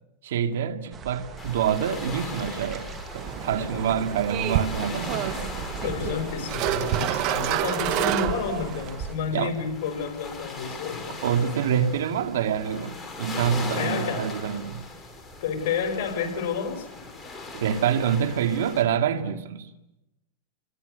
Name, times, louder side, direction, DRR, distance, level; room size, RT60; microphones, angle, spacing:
voice 1, 0.2-5.7 9.3-9.6 11.1-14.8 17.5-19.7, right 8 dB, 80° right, 2.3 m, -26 dB
sound 1, 0.9-9.2, right 6 dB, 25° right, 2.2 m, -39 dB
sound 2, 1.4-18.8, left 3 dB, 10° left, 4.9 m, -39 dB
sound 3, 3.2-8.9, right 13 dB, 45° right, 1.4 m, -29 dB
voice 2, 3.5-3.9 5.8-11.2 13.7-14.4 15.4-17.1, left 6 dB, 60° left, 6.0 m, -30 dB
29.5 x 22.5 x 6.8 m
supercardioid pair, 140°, 0 cm